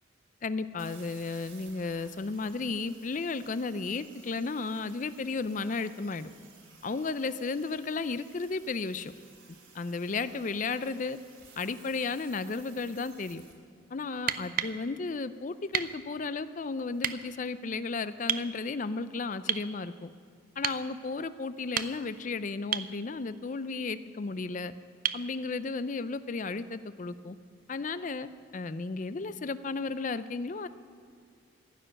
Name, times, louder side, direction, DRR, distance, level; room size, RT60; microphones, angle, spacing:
voice 1, 0.4-6.3 6.8-9.1 9.7-11.2 11.6-13.4 13.9-20.1 20.6-24.7 25.1-27.4 27.7-30.7, left 4 dB, 40° left, 14 dB, 0.4 m, -34 dB
sound 1, 0.8-13.5, right 5 dB, 75° right, 2.7 m, -56 dB
sound 2, 14.1-14.8 15.7-15.9 17.0-17.2 18.3-18.5 19.5-19.7 20.6-20.8 21.6-22.2 22.7-22.9 25.0-25.3 27.1-27.2, right 10 dB, 45° right, 0.4 m, -31 dB
15.5 x 6.8 x 9.9 m, 2.1 s
head